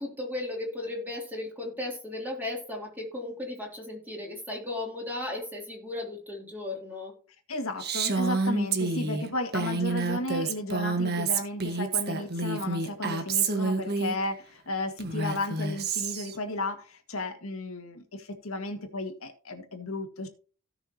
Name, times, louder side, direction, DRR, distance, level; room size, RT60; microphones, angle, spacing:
voice 1, 0.0-7.1, left 2 dB, 10° right, -2 dB, 2.9 m, -35 dB
voice 2, 7.5-20.3, left 2 dB, 70° left, 5 dB, 2.0 m, -34 dB
Female speech woman speaking, 7.8-14.2 15.0-16.4, right 3 dB, 50° right, 1.5 m, -28 dB
17.0 x 6.2 x 2.9 m, 0.39 s
head